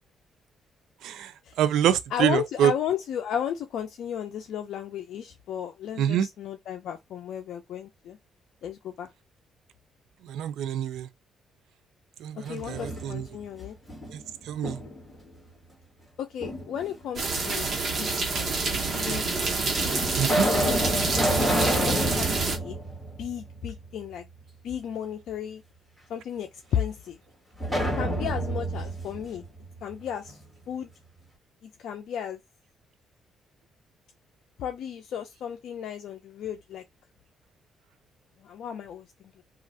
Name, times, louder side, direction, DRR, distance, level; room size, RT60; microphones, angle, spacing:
voice 1, 1.6-2.7 6.0-6.3 10.2-11.1 12.2-13.3 14.1-14.2 14.5-14.8 20.2-20.5, right 10 dB, 85° right, 0.4 m, -26 dB
voice 2, 2.1-8.2 8.6-9.1 12.3-13.8 16.2-17.7 18.0-19.4 20.6-20.8 21.2-22.3 22.5-22.8 23.2-24.3 24.6-25.6 26.1-27.2 27.9-29.4 29.8-30.4 30.7-30.9 31.6-32.4 34.6-36.8 38.4-39.4, left 9 dB, 75° left, 0.5 m, -34 dB
sound 1, 12.5-13.4 13.9-15.1 16.4-17.2 18.1-18.2 19.1-19.2 19.7-23.8 24.2-24.3 27.6-30.4, equal, 5° right, 1.8 m, -29 dB
sound 2, 17.2-22.6, right 3 dB, 45° right, 1.1 m, -27 dB
3.0 x 2.4 x 2.7 m
cardioid pair, 90°, 0 cm